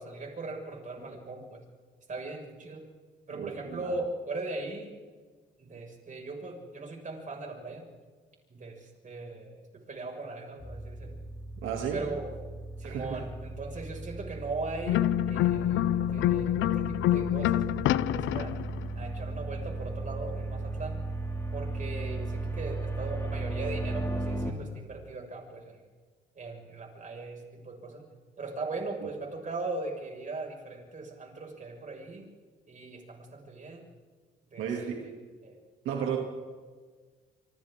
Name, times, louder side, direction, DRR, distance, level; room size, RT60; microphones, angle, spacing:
voice 1, 0.0-1.6 2.1-2.9 3.3-4.9 5.6-7.9 8.5-11.2 11.9-12.3 12.8-18.6 18.9-21.0 21.5-25.8 26.4-28.0 28.4-32.2 32.7-33.8 34.5-34.7 35.4-35.6 36.0-36.1, right 3 dB, 40° right, 1 dB, 5.9 m, -39 dB
voice 2, 3.3-4.0 11.6-12.1 12.8-13.2 29.0-29.1 34.6-35.0 35.8-36.2, right 7 dB, 90° right, 0 dB, 2.8 m, -33 dB
sound 1, 10.6-24.5, right 2 dB, 15° left, 2.5 m, -36 dB
sound 2, 14.9-18.9, left 13 dB, 80° left, 0.5 m, -26 dB
27.5 x 25.5 x 3.8 m, 1.5 s
cardioid pair, 90°, 20 cm